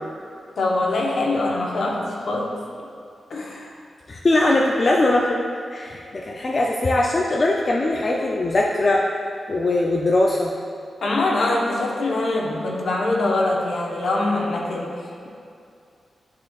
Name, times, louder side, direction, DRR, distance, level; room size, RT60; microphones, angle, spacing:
voice 1, 0.6-2.5 3.3-3.7 11.0-15.3, left 2 dB, 60° left, -2 dB, 0.9 m, -23 dB
voice 2, 4.1-5.4 5.7-9.0 9.5-10.5, left 2 dB, 35° left, -2 dB, 0.4 m, -20 dB
10.5 x 4.3 x 2.4 m, 2.5 s
wide cardioid pair, 155°, 0 cm